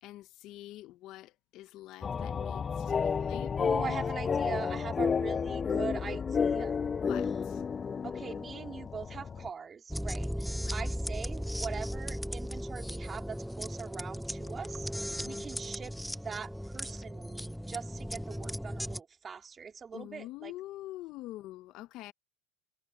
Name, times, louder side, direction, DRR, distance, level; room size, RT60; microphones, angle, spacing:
voice 1, 0.0-4.0 7.1-7.6 10.6-10.8 15.1-15.5 19.9-22.1, left 16 dB, 55° left, 0.9 m, -46 dB
sound 1, 2.0-9.5, left 6 dB, 25° left, 0.4 m, -31 dB
voice 2, 3.6-6.9 8.0-14.9 15.2-20.5, right 6 dB, 25° right, 4.3 m, -42 dB
sound 2, 9.9-19.0, equal, ahead, 0.8 m, -37 dB
supercardioid pair, 105°, 0 cm